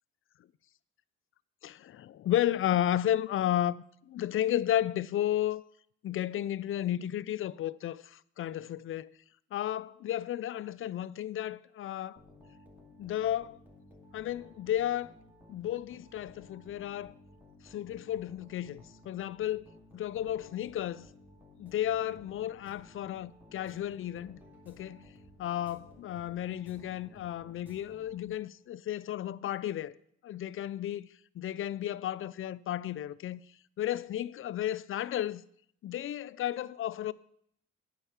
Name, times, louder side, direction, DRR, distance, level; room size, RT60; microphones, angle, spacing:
voice 1, 1.6-5.6 6.0-9.1 9.5-12.2 13.0-13.6 14.1-15.2 15.5-17.1 17.6-19.7 19.9-21.1 21.6-24.4 24.7-25.1 25.4-29.9 30.2-31.1 31.4-33.4 33.8-35.4 35.8-37.1, left 12 dB, 45° left, 0.4 m, -33 dB
sound 1, 12.2-28.6, left 1 dB, 5° right, 2.4 m, -56 dB
8.7 x 4.7 x 7.2 m
cardioid pair, 90°, 30 cm